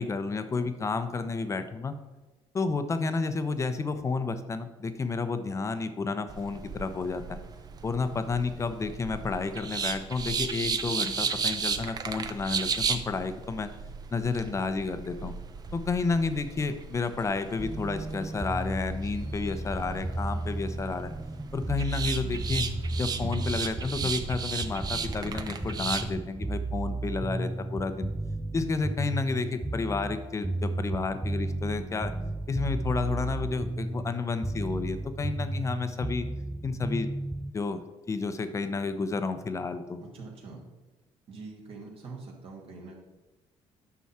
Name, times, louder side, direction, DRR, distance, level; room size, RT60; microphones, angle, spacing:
voice 1, 0.0-1.9 2.5-7.4 7.8-13.7 14.1-15.3 15.7-21.1 21.5-22.7 23.0-28.1 28.5-32.1 32.5-36.3 36.6-37.1 37.5-37.8 38.1-40.0, left 4 dB, 25° left, 10 dB, 0.7 m, -31 dB
sound 1, 6.3-26.1, right 5 dB, 35° right, 0.7 m, -35 dB
sound 2, 13.6-19.6, right 2 dB, 85° right, 2.1 m, -59 dB
sound 3, 17.6-37.5, right 2 dB, 5° right, 0.3 m, -34 dB
voice 2, 40.0-40.7 41.3-43.0, right 3 dB, 55° right, -1 dB, 2.5 m, -44 dB
9.4 x 6.1 x 4.3 m, 1.1 s
cardioid pair, 115°, 11 cm